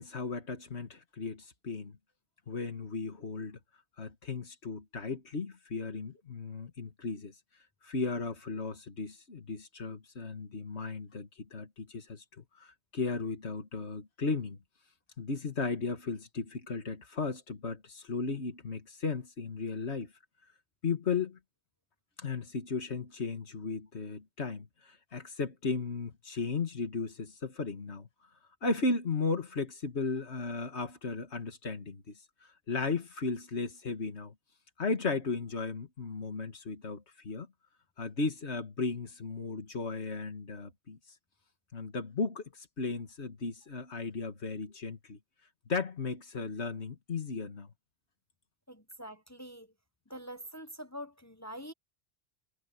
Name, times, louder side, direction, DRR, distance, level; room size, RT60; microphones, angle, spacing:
voice 1, 0.0-2.0 2.5-3.6 4.0-7.3 7.8-14.6 15.2-20.1 20.8-21.4 22.2-28.1 28.6-34.3 34.8-37.5 38.0-41.0 41.7-45.2 45.7-47.7, left 4 dB, 80° left, 2.2 m, -35 dB
voice 2, 48.7-49.7 50.1-51.7, equal, 15° left, 0.8 m, -45 dB
omnidirectional pair, 1.1 m